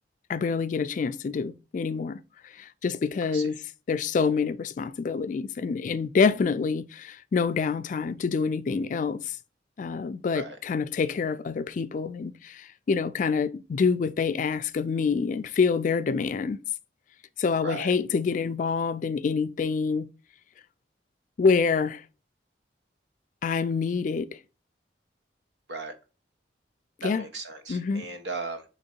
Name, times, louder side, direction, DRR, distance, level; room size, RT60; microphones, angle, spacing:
voice 1, 0.3-3.6 3.9-9.4 9.8-16.6 17.4-20.1 21.4-22.0 23.4-24.4 27.0-27.3 27.7-28.1, left 5 dB, 45° left, 0.3 m, -27 dB
voice 2, 17.6-17.9 25.7-25.9 27.0-28.6, right 3 dB, 90° right, 0.8 m, -36 dB
3.6 x 3.1 x 4.3 m
head